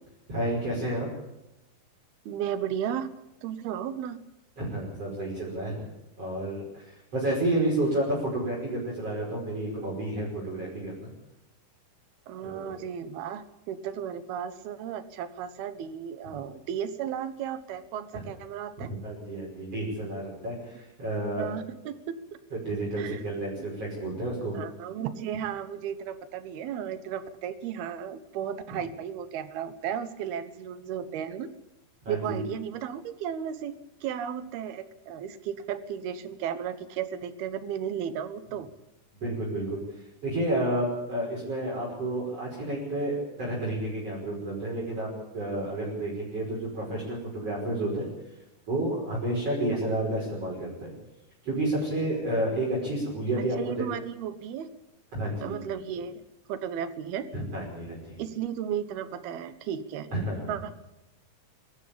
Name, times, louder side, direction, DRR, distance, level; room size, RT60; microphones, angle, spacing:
voice 1, 0.3-1.1 4.6-5.8 6.2-11.1 12.4-12.8 16.2-16.4 18.1-18.2 18.8-21.5 22.5-24.6 32.0-32.4 39.2-39.8 40.2-45.1 45.3-48.1 48.7-50.9 51.4-53.7 55.1-55.5 57.3-58.2 60.1-60.5, right 1 dB, 35° right, -4 dB, 6.2 m, -30 dB
voice 2, 2.3-3.1 3.4-4.2 12.3-18.9 21.4-22.2 23.0-23.2 23.6-23.7 24.5-31.5 32.1-33.8 34.0-38.7 53.6-54.7 55.4-56.2 56.5-57.3 58.2-60.1 60.5-60.7, right 9 dB, 70° right, 12 dB, 2.9 m, -34 dB
24.0 x 14.0 x 8.7 m, 0.90 s
omnidirectional pair, 5.1 m